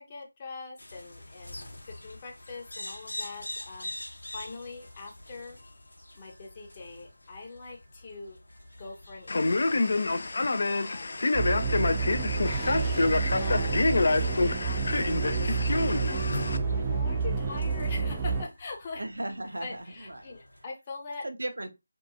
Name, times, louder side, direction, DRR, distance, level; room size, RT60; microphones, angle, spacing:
voice 1, 0.0-1.7 2.0-3.9 4.3-5.6 6.2-8.4 8.8-9.9 10.7-11.2 12.4-19.0 19.6-21.2, left 3 dB, 30° left, 0.7 m, -43 dB
sound 1, 0.8-20.6, left 1 dB, 75° left, 0.9 m, -47 dB
Male speech man speaking, 9.3-16.6, left 2 dB, 55° left, 0.3 m, -27 dB
sound 2, 11.3-18.4, right 4 dB, 20° right, 0.4 m, -29 dB
voice 2, 19.0-20.3 21.2-21.7, right 1 dB, 75° right, 0.6 m, -36 dB
2.6 x 2.2 x 2.6 m
figure-of-eight pair, 160°, 0 cm